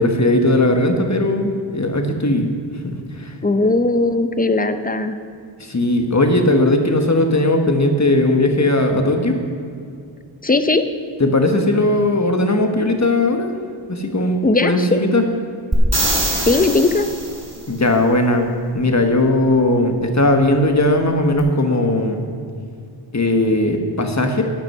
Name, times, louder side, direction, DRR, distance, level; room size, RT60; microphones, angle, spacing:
voice 1, 0.0-2.5 2.8-3.0 3.2-3.3 5.6-9.4 11.2-13.5 13.9-15.2 17.7-22.2 23.1-24.4, left 1 dB, 35° left, 5 dB, 1.4 m, -18 dB
voice 2, 3.4-5.2 10.4-10.9 14.4-15.0 16.4-17.1, left 2 dB, 20° left, 9 dB, 0.7 m, -18 dB
sound 1, 15.7-17.6 21.4-21.5, right 2 dB, 30° right, 2.3 m, -22 dB
13.0 x 9.1 x 5.6 m, 2.3 s
wide cardioid pair, 85°, 48 cm